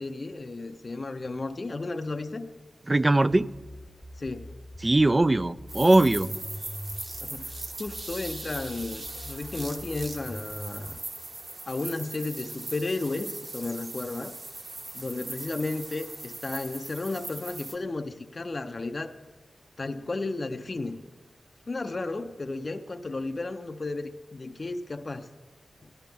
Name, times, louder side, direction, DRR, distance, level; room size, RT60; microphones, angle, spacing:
voice 1, 0.0-2.5 4.2-4.5 7.2-11.0 11.7-14.3 14.9-19.1 19.8-21.0 21.7-25.3 25.8-25.9, left 3 dB, 35° left, 7 dB, 0.6 m, -33 dB
voice 2, 2.9-3.5 4.8-6.3, right 2 dB, 20° right, 17 dB, 0.3 m, -20 dB
sound 1, 3.3-11.0, equal, ahead, 0.8 m, -43 dB
sound 2, 5.7-17.7, right 2 dB, 50° right, 1.4 m, -40 dB
17.5 x 13.5 x 3.5 m, 1.2 s
wide cardioid pair, 115°, 0 cm